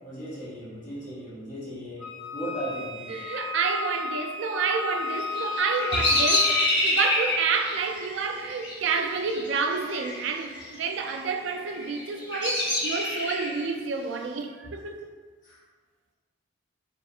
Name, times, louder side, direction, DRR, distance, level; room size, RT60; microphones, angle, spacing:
voice 1, 0.0-3.2 15.4-15.6, right 1 dB, 40° left, 1.2 m, -37 dB
Wind instrument woodwind instrument, 2.0-6.7, left 4 dB, 85° left, 0.8 m, -34 dB
voice 2, 3.1-15.1, right 5 dB, 60° right, 0.3 m, -29 dB
Bird vocalization bird call bird song, 5.1-10.2 10.4-11.0 11.6-13.6, left 1 dB, 55° left, 1.4 m, -27 dB
4.6 x 2.4 x 2.7 m
head